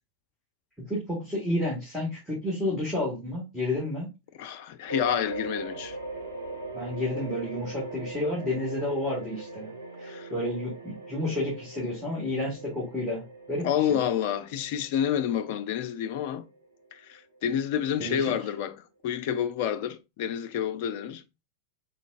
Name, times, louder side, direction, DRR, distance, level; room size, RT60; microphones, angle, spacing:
voice 1, 0.9-4.1 6.7-9.7 10.0-13.2 13.5-14.0 18.0-18.3, left 1 dB, ahead, 1.6 m, -30 dB
voice 2, 4.3-6.0 10.1-10.3 13.6-16.5 16.9-21.2, left 9 dB, 50° left, 0.5 m, -29 dB
sound 1, 4.9-17.7, right 2 dB, 75° right, 0.8 m, -40 dB
3.9 x 3.5 x 2.5 m
figure-of-eight pair, 90°, 0 cm